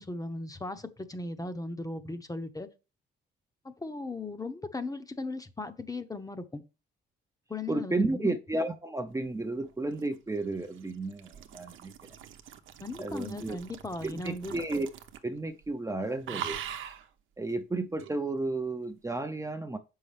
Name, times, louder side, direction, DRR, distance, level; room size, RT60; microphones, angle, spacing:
voice 1, 0.0-2.7 3.6-6.6 7.5-8.4 12.8-14.6, left 2 dB, 15° left, 0.9 m, -37 dB
voice 2, 7.7-11.9 13.0-13.6 14.0-14.9 15.2-16.6 17.4-19.8, right 2 dB, 15° right, 0.7 m, -32 dB
sound 1, 9.6-15.4 15.6-15.9 16.2-17.1 18.0-18.1, right 9 dB, 80° right, 0.8 m, -43 dB
6.9 x 5.6 x 3.4 m
cardioid pair, 90°, 20 cm